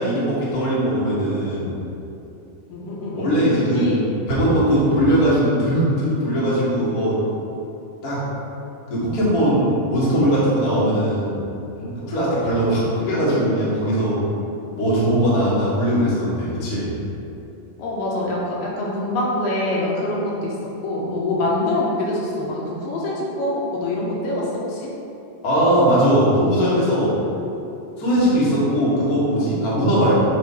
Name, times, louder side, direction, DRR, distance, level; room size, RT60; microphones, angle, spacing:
voice 1, 0.0-1.8 3.2-3.9 4.3-7.2 8.0-8.2 8.9-11.4 11.7-14.2 14.7-16.9 25.4-27.2 28.0-30.1, equal, 60° left, -9 dB, 0.9 m, -20 dB
voice 2, 2.7-4.1 4.4-4.6 17.8-20.5 20.8-24.9, left 1 dB, 75° left, -4 dB, 2.3 m, -25 dB
7.4 x 2.5 x 5.4 m, 2.9 s
omnidirectional pair, 4.3 m